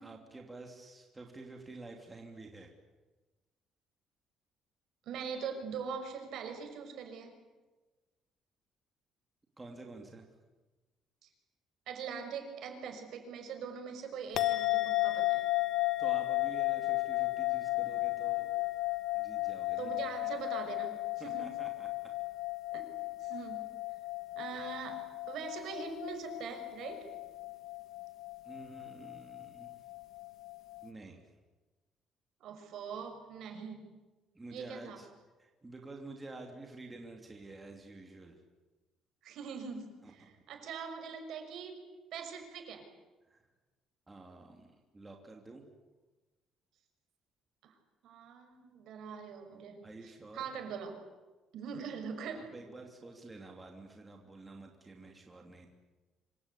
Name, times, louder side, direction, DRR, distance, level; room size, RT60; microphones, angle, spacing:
voice 1, 0.0-2.7 9.6-10.3 16.0-18.5 19.1-19.9 21.2-22.1 28.4-29.7 30.8-31.3 34.3-35.1 35.4-38.4 40.0-40.3 43.3-43.5 44.1-45.6 49.8-50.5 52.3-55.7, right 2 dB, 10° right, 2 dB, 2.9 m, -49 dB
voice 2, 5.1-7.3 11.2-11.3 11.9-15.4 19.8-21.5 22.7-22.8 23.2-23.8 24.4-27.0 32.4-34.0 34.5-35.0 39.2-41.8 42.1-42.9 47.6-47.7 48.0-51.0 51.5-52.6, right 6 dB, 60° right, 5 dB, 6.1 m, -42 dB
sound 1, 14.4-30.9, left 20 dB, 55° left, 1.4 m, -34 dB
26.5 x 26.0 x 8.4 m, 1.2 s
cardioid pair, 170°, 0 cm